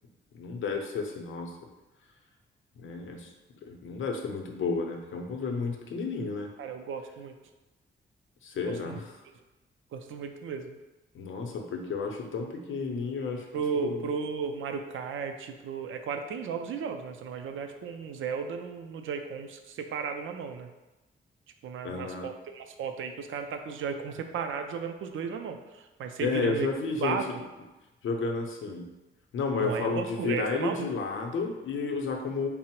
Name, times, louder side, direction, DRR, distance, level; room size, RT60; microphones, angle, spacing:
voice 1, 0.3-1.7 2.8-3.3 3.6-6.5 8.4-9.2 11.1-13.5 13.8-14.1 21.8-22.3 26.2-27.4 28.0-28.9 29.3-32.5, left 4 dB, 80° left, 2 dB, 0.6 m, -32 dB
voice 2, 6.6-7.3 8.8-9.0 9.9-10.8 13.5-20.7 21.6-26.7 27.0-27.3 29.6-30.9, right 6 dB, 85° right, 6 dB, 0.4 m, -34 dB
3.7 x 2.0 x 4.3 m, 1.1 s
wide cardioid pair, 170°, 20 cm